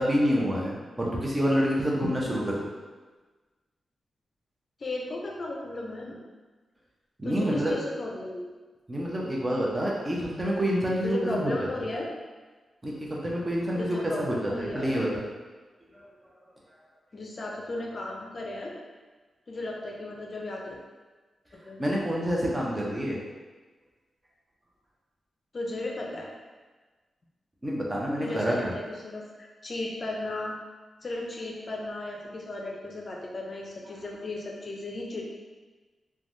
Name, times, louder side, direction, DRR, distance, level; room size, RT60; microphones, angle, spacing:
voice 1, 0.0-2.6 7.2-7.7 8.9-11.7 12.8-15.2 15.9-16.0 21.8-23.2 27.6-28.7, equal, 25° right, -4 dB, 0.7 m, -27 dB
voice 2, 4.8-6.2 7.2-8.5 11.0-12.1 13.8-14.9 17.1-18.7 19.5-20.8 21.5-22.0 25.5-26.3 28.2-30.6 31.0-35.3, left 2 dB, 45° left, -1 dB, 0.4 m, -35 dB
3.1 x 2.2 x 2.6 m, 1.3 s
cardioid pair, 75°, 0 cm